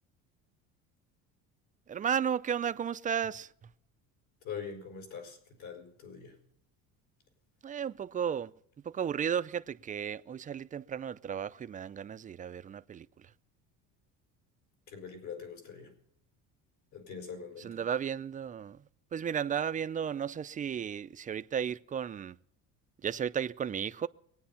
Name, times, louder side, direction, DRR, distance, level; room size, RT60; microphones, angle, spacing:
voice 1, 1.9-3.7 7.6-8.5 8.8-13.3 17.6-18.8 19.1-22.4 23.0-24.1, right 8 dB, 25° right, 0.5 m, -34 dB
voice 2, 4.4-6.4 14.9-15.9 16.9-17.8, left 6 dB, 65° left, 5.6 m, -43 dB
23.0 x 9.5 x 5.8 m
cardioid pair, 125°, 33 cm